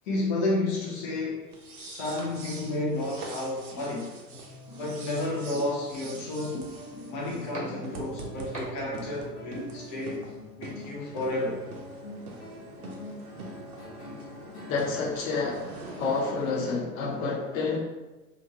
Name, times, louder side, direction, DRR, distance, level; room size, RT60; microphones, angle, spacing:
voice 1, 0.1-4.1 4.8-6.6 7.1-10.3 10.6-11.6, left 2 dB, 20° left, -4 dB, 0.3 m, -31 dB
sound 1, 1.5-16.7, right 3 dB, 65° right, 0.7 m, -45 dB
sound 2, 4.3-17.1, left 1 dB, 75° left, 1.1 m, -45 dB
sound 3, 5.5-5.6 6.5-6.6 7.5-7.6 8.5-8.6 9.5-9.6, equal, 15° right, 0.9 m, -35 dB
voice 2, 14.7-15.7 16.0-17.8, left 4 dB, 55° left, -2 dB, 0.9 m, -29 dB
2.6 x 2.5 x 2.8 m, 1.1 s
figure-of-eight pair, 85°, 48 cm